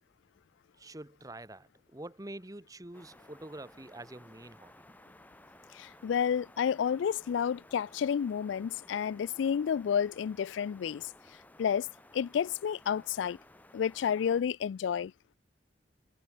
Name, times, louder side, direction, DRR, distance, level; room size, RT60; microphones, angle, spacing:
voice 1, 0.8-4.7, right 1 dB, 20° right, 1.2 m, -46 dB
sound 1, 2.9-14.4, left 1 dB, 10° left, 5.9 m, -57 dB
voice 2, 5.7-11.1 11.6-11.9 12.1-13.4 13.7-15.1, left 7 dB, 85° left, 0.3 m, -30 dB
head